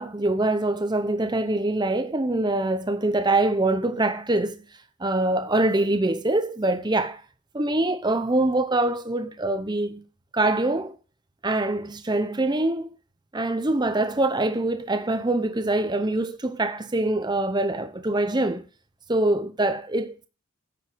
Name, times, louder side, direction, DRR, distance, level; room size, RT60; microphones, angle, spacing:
voice 1, 0.0-4.6 5.0-7.2 7.5-10.0 10.3-11.0 11.4-12.9 13.3-18.7 19.1-20.3, right 2 dB, 20° right, 0.8 m, -24 dB
10.0 x 7.5 x 5.1 m
head